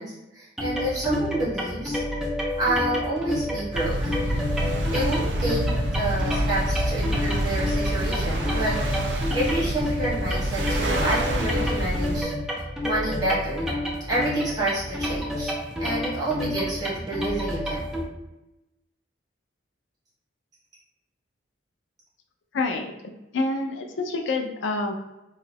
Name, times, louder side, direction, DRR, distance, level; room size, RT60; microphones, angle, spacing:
voice 1, 0.0-2.0 2.6-4.2 4.6-5.6 5.9-8.8 9.1-12.3 12.8-13.7 14.1-15.5 15.8-17.8, right 1 dB, 20° right, -8 dB, 1.3 m, -29 dB
sound 1, 0.6-18.0, left 1 dB, ahead, 0.4 m, -30 dB
sound 2, 3.7-12.2, equal, 60° right, 0.5 m, -27 dB
voice 2, 22.5-22.9 23.3-24.9, left 3 dB, 70° left, 4 dB, 0.4 m, -27 dB
2.9 x 2.3 x 3.3 m, 0.96 s
head